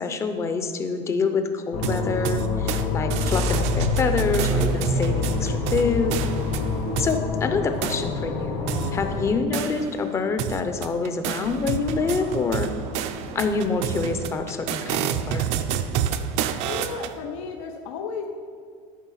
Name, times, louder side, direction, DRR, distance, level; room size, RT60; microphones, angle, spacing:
voice 1, 0.0-6.2 7.0-8.6 8.9-12.7 13.3-15.5, left 4 dB, 20° left, 8 dB, 0.6 m, -26 dB
sound 1, 1.7-9.3, left 3 dB, 60° left, 1.6 m, -26 dB
sound 2, 1.8-2.8 3.1-7.2 7.8-8.0 8.7-10.1 10.4-17.1, right 9 dB, 50° right, 0.5 m, -29 dB
voice 2, 9.3-9.7 16.6-18.3, left 5 dB, 80° left, 3 dB, 0.9 m, -34 dB
Scratching (performance technique), 11.4-14.0, right 2 dB, 90° right, 2.5 m, -41 dB
13.0 x 5.5 x 5.7 m, 2.1 s
cardioid pair, 175°, 15 cm